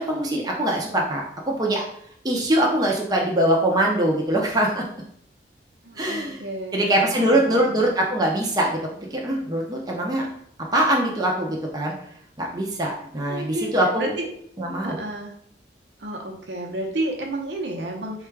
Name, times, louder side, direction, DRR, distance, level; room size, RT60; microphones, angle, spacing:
voice 1, 0.0-1.8 2.2-4.8 6.0-6.4 6.7-8.8 9.1-10.3 10.7-11.9 12.4-14.1 14.6-15.0, right 1 dB, 20° right, -2 dB, 0.5 m, -22 dB
voice 2, 5.8-7.8 13.3-14.3 14.8-15.4 16.0-18.3, right 1 dB, 75° right, 1 dB, 0.8 m, -31 dB
3.6 x 2.3 x 4.5 m, 0.66 s
head